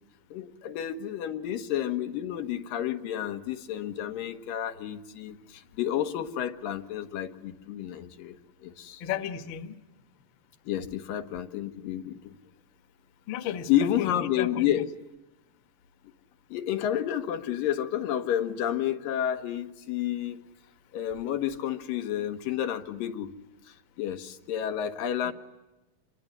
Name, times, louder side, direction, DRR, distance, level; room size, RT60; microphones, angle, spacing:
voice 1, 0.3-8.4 8.6-9.0 10.7-12.4 13.7-14.9 16.5-20.4 20.9-23.3 23.7-25.3, left 11 dB, 90° left, 7 dB, 3.1 m, -30 dB
voice 2, 9.0-9.7 13.3-14.7 25.2-25.3, left 9 dB, 55° left, 9 dB, 1.4 m, -34 dB
27.5 x 23.0 x 9.6 m, 1.0 s
omnidirectional pair, 3.9 m